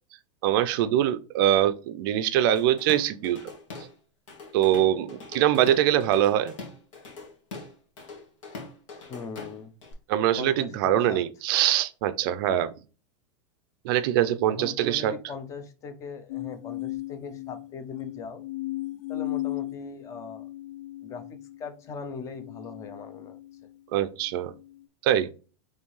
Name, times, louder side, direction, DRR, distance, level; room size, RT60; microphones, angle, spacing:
voice 1, 0.4-3.4 4.5-6.5 10.1-12.7 13.8-15.1 23.9-24.5 25.0-25.3, right 11 dB, 45° right, 0.4 m, -23 dB
Drum kit / Drum, 2.6-3.9 4.3-9.9, left 3 dB, 85° left, 1.5 m, -43 dB
voice 2, 9.1-9.7 10.4-11.2 14.5-18.4 19.1-20.5 21.0-21.2 21.6-23.4, left 5 dB, 20° left, 0.5 m, -40 dB
sound 1, 16.3-23.7 24.3-24.8, left 17 dB, 70° left, 0.4 m, -37 dB
4.4 x 3.1 x 3.1 m
supercardioid pair, 160°, 16 cm